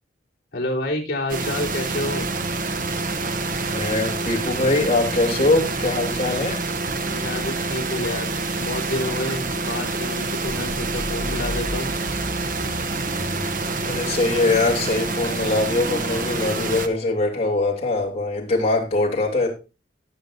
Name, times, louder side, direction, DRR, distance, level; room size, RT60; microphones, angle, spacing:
voice 1, 0.5-2.3 7.0-11.9, left 1 dB, 55° left, -3 dB, 3.8 m, -29 dB
sound 1, 1.3-16.9, right 3 dB, 45° right, 1.0 m, -27 dB
voice 2, 3.7-6.6 13.8-19.5, left 2 dB, 35° left, -1 dB, 3.0 m, -22 dB
sound 2, 10.4-16.9, equal, 10° right, 5.5 m, -35 dB
18.5 x 6.9 x 2.6 m, 0.30 s
head